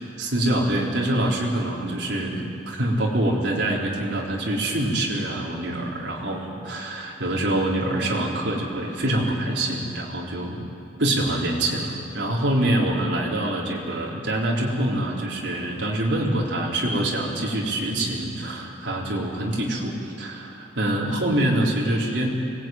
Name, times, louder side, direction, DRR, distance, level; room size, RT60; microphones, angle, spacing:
voice 1, 0.2-10.6 11.0-22.3, right 1 dB, 75° right, -4 dB, 4.2 m, -25 dB
24.5 x 19.5 x 9.3 m, 2.7 s
head